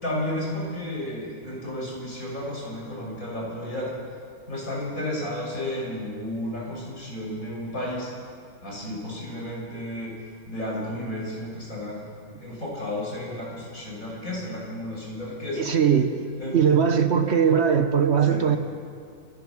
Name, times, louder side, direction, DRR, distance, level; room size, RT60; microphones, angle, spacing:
voice 1, 0.0-3.9 4.5-8.1 8.6-12.1 12.4-15.7 16.4-16.6 18.2-18.4, left 1 dB, 75° left, -4 dB, 6.9 m, -32 dB
voice 2, 15.5-16.3 16.5-18.6, right 7 dB, 55° right, 7 dB, 1.3 m, -20 dB
26.5 x 16.5 x 6.2 m, 2.2 s
omnidirectional pair, 1.5 m